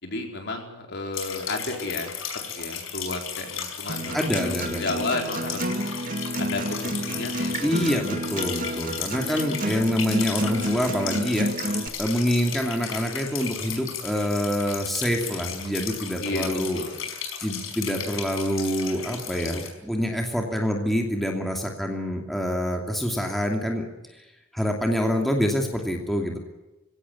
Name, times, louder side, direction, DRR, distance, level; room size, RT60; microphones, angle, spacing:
voice 1, 0.0-2.1 2.6-5.6 6.4-7.9 16.2-16.9, left 2 dB, 55° left, 3 dB, 4.6 m, -32 dB
sound 1, 1.1-19.7, left 8 dB, 70° left, 5.4 m, -35 dB
Acoustic guitar, 3.9-11.9, right 1 dB, 40° right, 2.0 m, -30 dB
voice 2, 4.1-4.8 7.6-11.5 12.0-16.8 17.4-23.9 24.2-24.3 24.5-26.4, equal, ahead, 1 dB, 2.7 m, -26 dB
23.5 x 17.0 x 9.9 m, 1.0 s
head